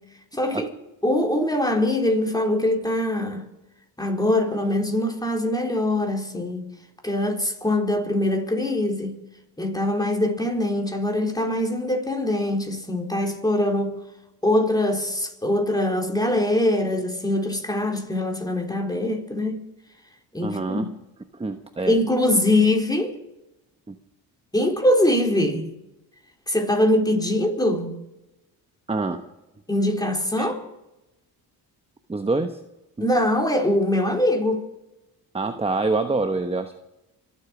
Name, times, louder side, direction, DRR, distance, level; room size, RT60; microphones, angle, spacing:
voice 1, 0.3-0.7 1.0-3.4 4.0-6.7 7.0-9.2 9.6-13.9 14.4-19.6 20.3-20.8 21.9-23.2 24.5-25.7 26.5-28.0 29.7-30.6 33.0-34.7, left 1 dB, 10° left, 4.0 m, -23 dB
voice 2, 20.4-20.9 21.3-22.0 23.9-24.0 28.9-29.2 30.4-30.5 32.1-32.6 35.3-36.7, right 3 dB, 15° right, 1.1 m, -26 dB
25.5 x 8.6 x 6.1 m
supercardioid pair, 70°, 40 cm